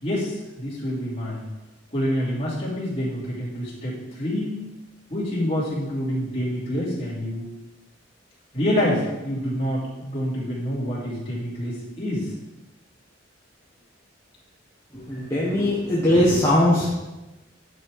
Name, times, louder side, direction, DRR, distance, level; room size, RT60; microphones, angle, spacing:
voice 1, 0.0-1.4 1.9-4.6 5.1-7.5 8.5-12.3, equal, 30° left, -8 dB, 2.9 m, -27 dB
voice 2, 14.9-16.9, left 1 dB, 15° left, -8 dB, 1.3 m, -20 dB
9.6 x 4.3 x 4.9 m, 1.1 s
head